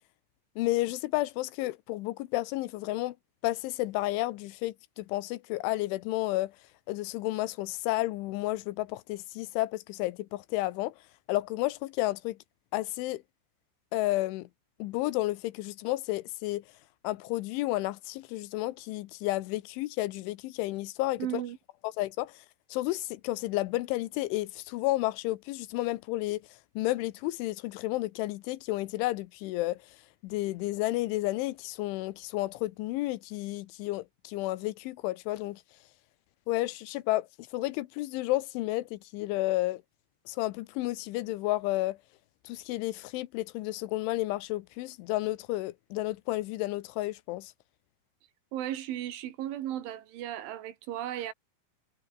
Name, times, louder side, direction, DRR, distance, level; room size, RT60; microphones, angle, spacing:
voice 1, 0.6-3.2 3.4-6.5 6.9-10.9 11.3-12.4 12.7-13.2 13.9-14.5 14.8-16.6 17.0-21.4 21.8-22.3 22.7-26.4 26.8-29.8 30.2-35.6 36.5-37.3 37.5-39.8 40.3-42.0 42.5-47.5, left 18 dB, 80° left, 3.3 m, -31 dB
voice 2, 21.2-21.6 48.5-51.3, right 12 dB, 80° right, 4.4 m, -35 dB
omnidirectional pair, 5.5 m